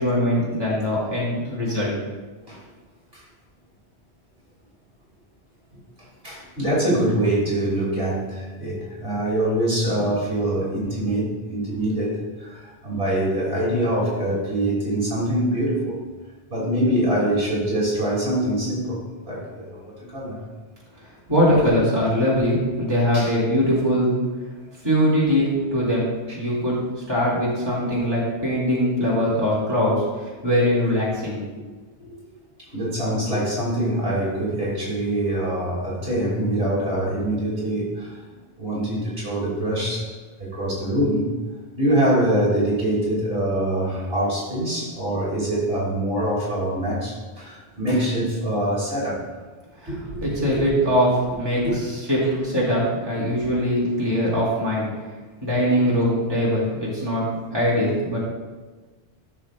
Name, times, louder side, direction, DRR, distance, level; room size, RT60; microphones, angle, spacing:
voice 1, 0.0-1.9 21.3-24.2 24.8-26.8 27.1-31.4 32.0-32.1 49.8-49.9 50.2-54.8 55.4-57.2 57.5-58.2, equal, 20° right, -8 dB, 2.8 m, -22 dB
voice 2, 6.2-16.0 16.5-20.4 23.1-23.3 32.7-38.2 38.6-40.1 40.4-41.3 41.8-49.2 49.9-50.6 51.6-51.7, right 1 dB, 55° right, -6 dB, 3.2 m, -24 dB
15.0 x 6.5 x 2.5 m, 1.3 s
omnidirectional pair, 1.1 m